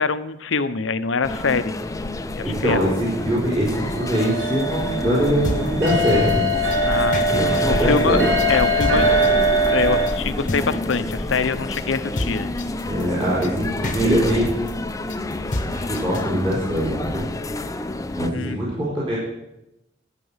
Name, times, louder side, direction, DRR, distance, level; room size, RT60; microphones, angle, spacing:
voice 1, 0.0-1.7 2.3-2.8 6.9-8.2 8.5-9.1 9.7-12.5 18.3-18.6, left 4 dB, 80° left, 13 dB, 0.7 m, -24 dB
sound 1, 1.2-18.3, left 2 dB, 15° left, 0.6 m, -28 dB
voice 2, 2.4-6.4 6.7-6.9 7.3-8.3 12.9-14.9 15.6-17.3 18.1-19.2, equal, 30° right, -7 dB, 4.1 m, -23 dB
sound 2, 3.7-10.1, right 1 dB, 60° right, 3.5 m, -22 dB
sound 3, 5.2-16.2, left 2 dB, 40° left, 1.0 m, -30 dB
12.5 x 8.3 x 5.6 m, 0.88 s
head